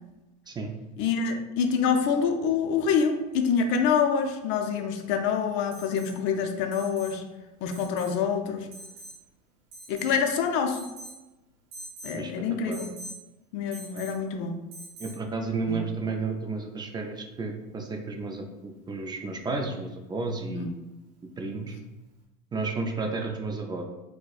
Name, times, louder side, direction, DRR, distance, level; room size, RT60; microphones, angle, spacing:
voice 1, 1.0-7.2 7.6-8.7 9.9-10.9 12.0-12.9 13.5-14.6 15.7-15.8 20.5-20.7, left 6 dB, 65° left, 5 dB, 0.5 m, -26 dB
Alarm, 5.7-6.2 6.7-7.2 7.7-8.2 8.7-9.2 9.7-10.2 10.7-11.2 11.7-12.2 12.7-13.2 13.7-14.2 14.7-15.2 16.9-17.0, right 2 dB, 90° right, 0.7 m, -44 dB
voice 2, 15.0-20.7 21.4-21.7 22.5-23.8, right 3 dB, 20° right, 3 dB, 0.3 m, -32 dB
4.0 x 2.1 x 2.3 m, 1.0 s
supercardioid pair, 95°, 21 cm